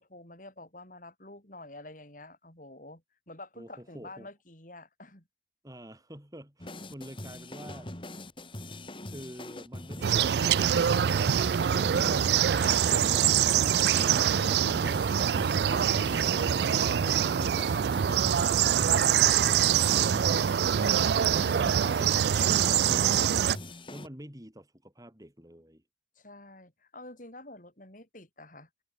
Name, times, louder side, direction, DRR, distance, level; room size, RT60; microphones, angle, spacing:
voice 1, 0.0-5.3 21.4-22.2 26.2-28.7, left 2 dB, 45° left, 6.4 m, -48 dB
voice 2, 3.6-4.3 5.6-7.9 9.1-11.5 22.1-25.8, equal, 20° right, 4.1 m, -49 dB
sound 1, 6.6-24.1, left 1 dB, 30° left, 2.7 m, -42 dB
sound 2, 10.0-23.6, right 9 dB, 65° right, 0.4 m, -24 dB
head